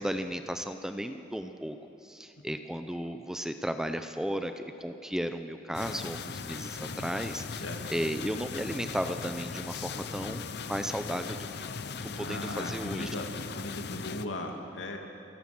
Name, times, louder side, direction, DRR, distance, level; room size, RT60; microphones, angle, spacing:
voice 1, 0.0-7.6 7.9-11.7 12.0-13.1, equal, 5° right, 8 dB, 0.7 m, -35 dB
sound 1, 5.7-14.3, left 5 dB, 60° left, 0.7 m, -39 dB
voice 2, 12.2-13.3 13.5-15.0, left 1 dB, 90° left, 2 dB, 2.5 m, -37 dB
28.5 x 17.0 x 6.2 m, 2.8 s
head